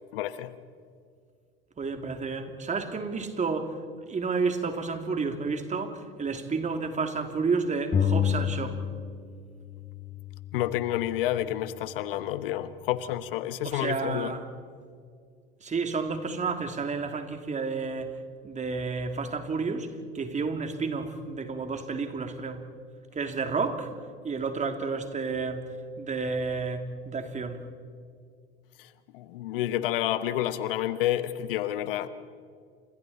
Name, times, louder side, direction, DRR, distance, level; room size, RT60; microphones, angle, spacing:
voice 1, 0.1-0.6 10.5-14.3 28.8-32.1, left 13 dB, 70° left, 1.2 m, -29 dB
voice 2, 1.8-8.8 13.6-14.5 15.6-22.7 23.1-23.9 24.2-27.6, right 4 dB, 25° right, 2.9 m, -31 dB
sound 1, 7.9-9.4 9.7-11.5, left 8 dB, 25° left, 2.1 m, -30 dB
30.0 x 27.5 x 4.3 m
hypercardioid pair, 80°, 29 cm